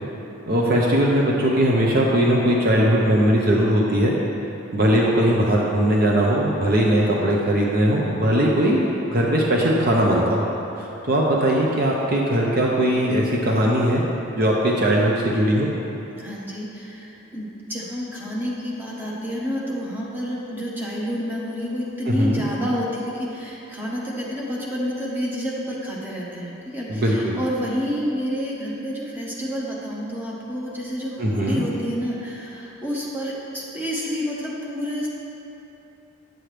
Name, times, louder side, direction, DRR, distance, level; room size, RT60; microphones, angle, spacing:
voice 1, 0.5-4.2 4.7-10.5 10.8-14.0 14.3-15.7 22.0-22.4 26.9-27.4 31.2-31.6, right 1 dB, 45° right, -2 dB, 0.7 m, -20 dB
voice 2, 16.2-35.1, equal, 10° right, -5 dB, 1.1 m, -29 dB
9.0 x 7.5 x 3.3 m, 3.0 s
head